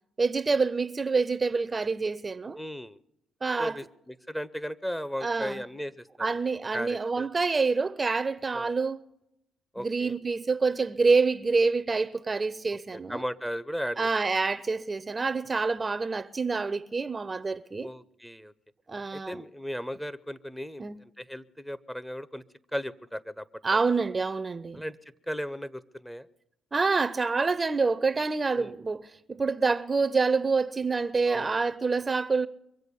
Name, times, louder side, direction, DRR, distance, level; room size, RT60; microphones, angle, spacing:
voice 1, 0.2-2.6 3.4-3.8 5.2-5.6 6.2-9.0 9.8-13.2 14.0-17.9 18.9-19.4 20.8-21.0 23.6-24.8 26.7-32.5, right 4 dB, 30° right, 0.5 m, -27 dB
voice 2, 2.6-3.0 3.6-6.4 6.7-7.3 8.5-8.7 9.7-10.1 12.9-14.1 17.8-18.5 19.1-22.4 22.7-23.8 24.7-25.0 25.3-26.3 28.5-28.8 31.3-31.6, equal, 5° left, 0.7 m, -36 dB
23.0 x 7.9 x 6.9 m
supercardioid pair, 60°, 0 cm